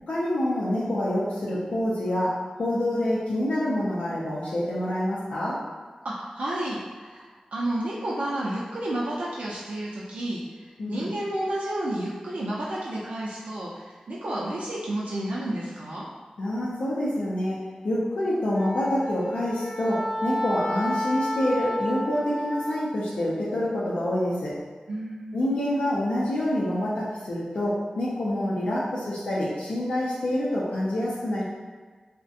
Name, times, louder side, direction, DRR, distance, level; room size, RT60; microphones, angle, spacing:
voice 1, 0.1-5.6 10.8-11.1 16.4-17.6 17.8-24.5 25.3-31.4, left 1 dB, 90° left, -8 dB, 0.4 m, -27 dB
voice 2, 6.0-16.1 24.9-25.5, right 1 dB, 85° right, -6 dB, 0.4 m, -31 dB
Wind instrument woodwind instrument, 18.5-22.9, equal, 20° left, 0.5 m, -31 dB
2.4 x 2.1 x 2.6 m, 1.4 s
wide cardioid pair, 65°, 2 cm